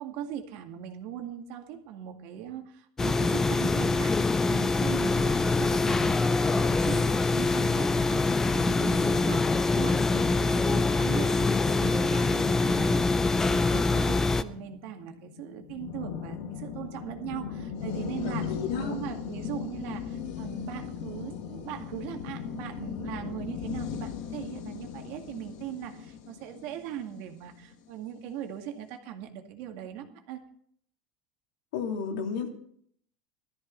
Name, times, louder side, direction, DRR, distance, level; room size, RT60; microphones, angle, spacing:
voice 1, 0.0-30.4, right 10 dB, 60° right, 4 dB, 2.0 m, -40 dB
sound 1, 3.0-14.4, left 3 dB, 15° left, 0.6 m, -24 dB
sound 2, 14.0-27.9, left 7 dB, 60° left, 1.5 m, -38 dB
voice 2, 18.2-19.0 31.7-32.5, left 6 dB, 80° left, 2 dB, 2.9 m, -34 dB
17.5 x 13.5 x 4.0 m, 0.64 s
supercardioid pair, 150°, 3 cm